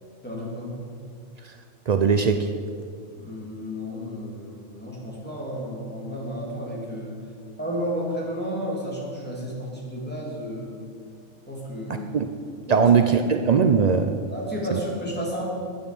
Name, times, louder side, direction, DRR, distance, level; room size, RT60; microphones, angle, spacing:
voice 1, 0.2-0.8 3.2-7.1 7.6-10.8 11.5-12.1 12.7-12.9 14.3-15.5, equal, 5° left, -5 dB, 3.1 m, -32 dB
voice 2, 1.9-2.5 12.1-12.3 12.7-14.2 14.7-14.8, right 6 dB, 70° right, 7 dB, 0.4 m, -20 dB
10.5 x 9.0 x 7.7 m, 2.2 s
omnidirectional pair, 1.4 m